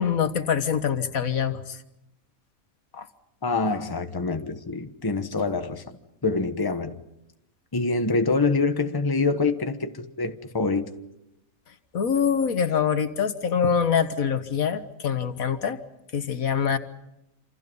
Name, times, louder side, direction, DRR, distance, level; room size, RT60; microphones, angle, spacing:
voice 1, 0.0-1.8 2.9-3.1 11.9-15.8 16.1-16.8, left 7 dB, 80° left, 1.7 m, -24 dB
voice 2, 3.4-7.0 7.7-10.9, left 3 dB, 15° left, 1.2 m, -26 dB
28.0 x 27.5 x 5.5 m
omnidirectional pair, 1.5 m